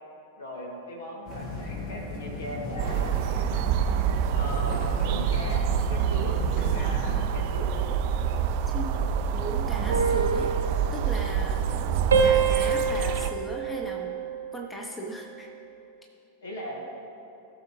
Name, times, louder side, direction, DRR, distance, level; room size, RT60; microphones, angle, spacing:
voice 1, 0.4-3.2 4.3-7.8 16.4-16.8, equal, 65° left, -1 dB, 2.1 m, -38 dB
sound 1, 1.2-7.3, left 2 dB, 40° left, 1.6 m, -36 dB
sound 2, 2.8-13.3, right 8 dB, 45° right, 0.5 m, -27 dB
voice 2, 8.7-9.0 9.3-10.5 10.9-11.6 12.2-14.1 14.5-15.5, right 1 dB, 10° left, 1 dB, 1.1 m, -37 dB
sound 3, 9.9-11.8 12.1-14.7 15.1-15.5, right 5 dB, 65° right, 1.0 m, -27 dB
17.5 x 6.6 x 3.2 m, 2.7 s
figure-of-eight pair, 90°, 0 cm